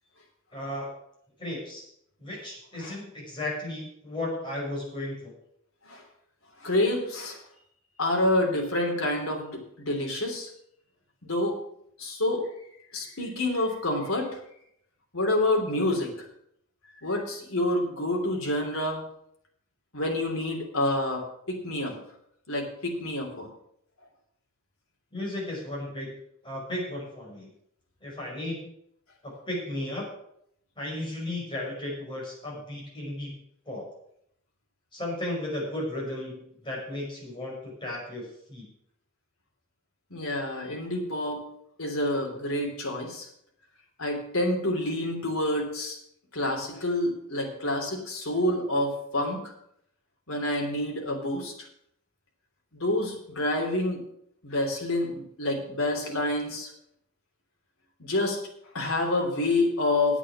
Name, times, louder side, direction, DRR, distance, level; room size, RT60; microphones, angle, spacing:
voice 1, 0.5-0.9 1.4-1.9 2.2-5.3 25.1-26.2 26.4-27.5 28.0-28.7 29.2-30.1 30.8-33.4 33.7-33.9 34.9-38.6, left 1 dB, 25° left, -4 dB, 5.6 m, -34 dB
voice 2, 6.6-7.4 8.0-10.5 11.2-11.6 12.0-12.5 12.9-14.3 15.1-16.1 17.0-19.0 19.9-22.0 22.5-23.5 40.1-41.5 41.8-43.3 44.0-46.0 46.3-49.4 50.3-51.5 52.8-54.0 54.4-56.7 58.0-58.4 58.7-60.2, left 1 dB, 70° left, 1 dB, 3.3 m, -28 dB
9.4 x 8.6 x 7.3 m, 0.72 s
head